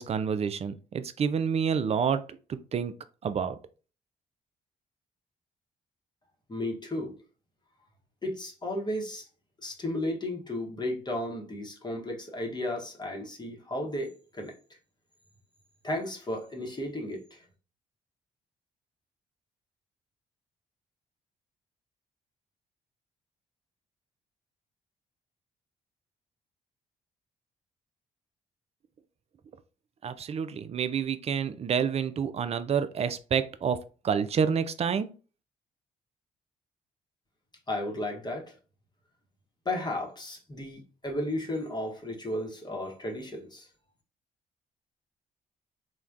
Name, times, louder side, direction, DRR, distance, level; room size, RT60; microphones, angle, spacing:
voice 1, 0.0-2.2 2.5-2.9 3.2-3.6 30.0-33.8 34.0-35.1, right 7 dB, 35° right, 0.4 m, -28 dB
voice 2, 6.5-7.1 8.2-9.2 9.6-14.5 15.8-17.4 37.7-38.5 39.6-43.7, left 1 dB, 25° left, 0.9 m, -34 dB
3.2 x 2.1 x 2.4 m
hypercardioid pair, 45°, 18 cm